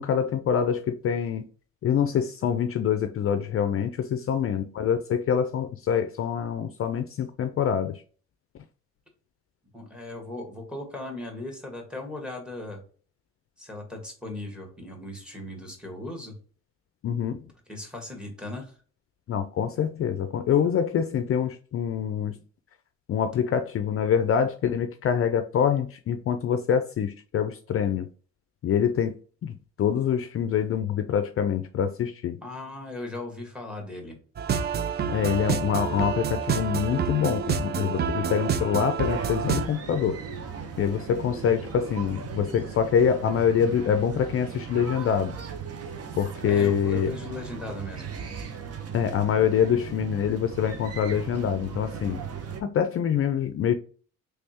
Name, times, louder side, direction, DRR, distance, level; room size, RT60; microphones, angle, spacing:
voice 1, 0.0-1.5 1.8-8.0 17.0-17.5 19.3-22.4 23.1-28.1 28.6-32.4 35.1-40.2 40.8-45.3 46.2-47.1 48.9-52.2 52.6-53.7, left 8 dB, 50° left, 0.4 m, -25 dB
voice 2, 9.7-12.8 13.6-16.4 17.7-18.8 32.4-34.2 46.4-48.1, left 2 dB, 5° right, 1.5 m, -38 dB
sound 1, 34.4-39.7, right 6 dB, 35° right, 0.4 m, -28 dB
sound 2, 39.0-52.6, right 6 dB, 55° right, 0.8 m, -37 dB
3.4 x 3.2 x 2.8 m
cardioid pair, 90°, 30 cm